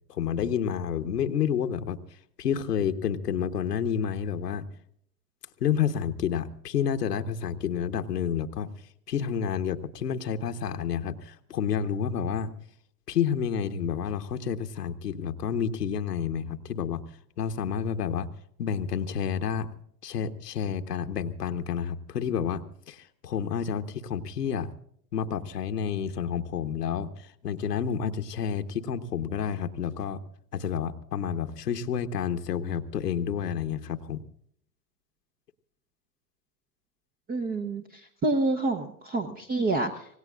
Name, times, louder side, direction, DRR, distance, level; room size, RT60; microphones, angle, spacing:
voice 1, 0.1-2.0 2.4-4.7 5.6-8.7 9.1-12.5 13.1-17.0 17.4-18.3 18.6-19.7 20.0-24.7 25.1-30.2 30.5-34.2, left 8 dB, 80° left, 8 dB, 1.2 m, -29 dB
voice 2, 37.3-37.8 38.2-40.2, right 2 dB, 20° right, 6 dB, 1.0 m, -27 dB
26.0 x 18.5 x 2.5 m, 0.67 s
hypercardioid pair, 105°, 47 cm